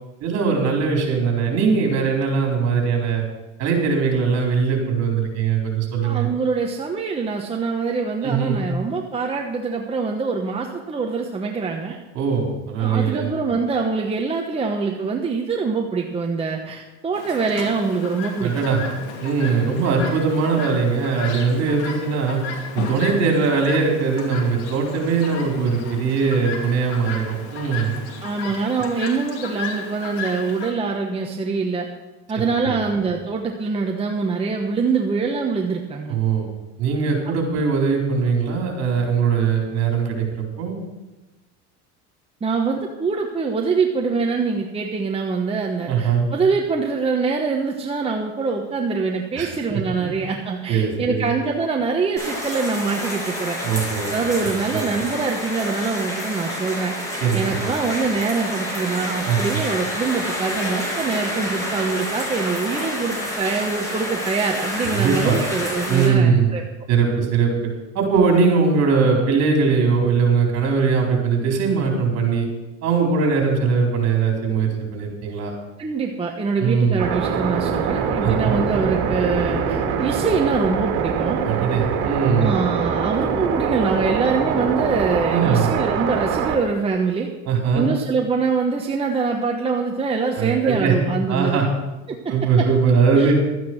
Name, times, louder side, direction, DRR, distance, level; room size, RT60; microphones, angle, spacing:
voice 1, 0.2-3.2 3.6-6.3 8.2-8.6 12.1-13.3 18.4-18.8 19.2-22.4 22.7-27.9 32.6-32.8 36.1-36.5 36.8-40.7 45.9-46.3 49.4-50.1 50.7-51.3 53.6-54.1 54.7-54.9 57.2-57.8 59.3-59.4 64.8-65.4 65.9-66.5 66.9-67.5 67.9-72.5 72.8-75.5 76.6-77.0 78.2-78.6 81.4-82.5 85.3-85.6 87.5-87.9 90.3-90.9 91.3-91.7 92.3-93.3, right 5 dB, 45° right, 1 dB, 4.3 m, -20 dB
voice 2, 6.0-12.0 12.8-18.5 28.2-31.9 32.3-36.2 42.4-53.6 54.1-66.6 75.8-81.4 82.4-87.3 87.7-91.7 92.1-92.7 93.2-93.3, right 4 dB, 15° right, 1 dB, 1.1 m, -24 dB
Chirp tweet, 17.1-30.7, left 5 dB, 90° left, 2.6 m, -34 dB
sound 1, 52.2-66.1, left 1 dB, 10° left, 5.8 m, -28 dB
sound 2, 77.0-86.6, right 6 dB, 65° right, 2.2 m, -23 dB
12.5 x 9.4 x 6.3 m, 1.1 s
supercardioid pair, 125°, 34 cm